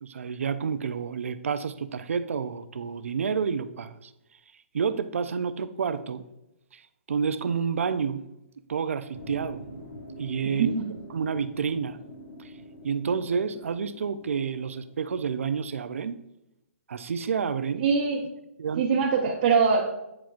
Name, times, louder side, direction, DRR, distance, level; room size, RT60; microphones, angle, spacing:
voice 1, 0.0-4.1 4.7-6.2 6.7-6.8 7.1-8.2 8.7-9.7 10.2-10.8 11.1-12.0 12.8-16.2 16.9-17.9 18.6-19.0, right 6 dB, 75° right, 0.5 m, -29 dB
sound 1, 9.1-15.4, equal, 70° left, 1.6 m, -45 dB
voice 2, 10.6-10.9 17.8-18.2 18.8-19.9, right 5 dB, 45° right, 1.0 m, -23 dB
9.4 x 4.4 x 2.5 m
hypercardioid pair, 140°, 7 cm